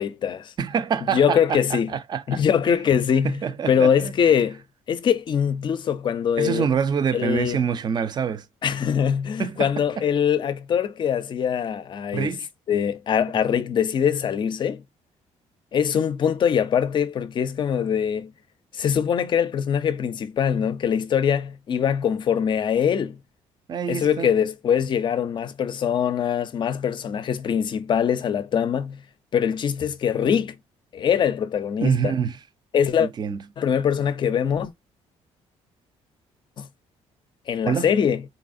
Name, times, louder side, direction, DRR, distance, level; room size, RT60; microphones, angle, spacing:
voice 1, 0.0-0.5 1.1-1.9 2.3-3.4 3.7-4.6 4.9-6.7 7.1-7.6 8.6-12.3 12.7-14.8 15.7-18.3 18.7-23.2 23.9-29.0 29.3-30.6 30.9-32.1 32.7-33.1 33.6-34.7 36.6-36.7 37.5-38.2, left 8 dB, 40° left, 0.5 m, -23 dB
voice 2, 0.6-2.4 2.7-2.8 3.2-4.1 6.4-8.5 9.4-10.1 12.1-12.5 13.5-13.6 23.7-24.3 31.8-32.4 33.0-33.4 37.6-37.9, right 7 dB, 35° right, 0.5 m, -26 dB
4.0 x 3.2 x 2.6 m
cardioid pair, 140°, 12 cm